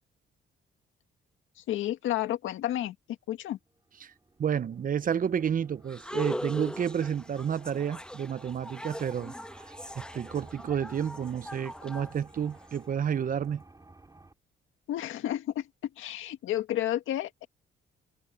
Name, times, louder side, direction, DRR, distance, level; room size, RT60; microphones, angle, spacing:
voice 1, 1.7-3.0 3.3-3.6 14.9-15.6 16.0-17.5, left 13 dB, 85° left, 1.9 m, -31 dB
sound 1, 3.7-14.3, right 2 dB, 20° right, 3.8 m, -53 dB
voice 2, 4.4-9.3 10.0-13.6, right 8 dB, 45° right, 0.7 m, -30 dB
sound 2, 5.9-12.8, left 1 dB, 5° left, 1.4 m, -40 dB
cardioid pair, 90°, 20 cm